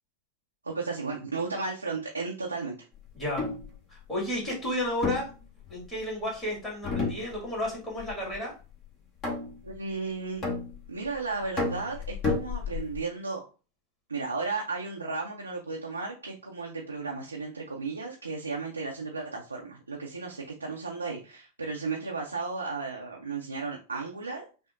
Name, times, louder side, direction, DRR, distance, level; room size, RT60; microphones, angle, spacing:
voice 1, 0.6-2.8 9.6-10.4 10.9-13.4 14.1-24.5, right 4 dB, 80° right, -1 dB, 0.6 m, -34 dB
voice 2, 3.1-3.5 3.9-5.3 5.7-8.5, left 1 dB, 15° left, -4 dB, 1.9 m, -32 dB
sound 1, 3.2-3.7 5.0-6.1 6.8-7.7 8.0-8.4 9.2-9.7 10.4-11.1 11.6-13.0, left 4 dB, 30° left, 1.3 m, -31 dB
5.7 x 2.0 x 2.5 m, 0.34 s
figure-of-eight pair, 90°, 0 cm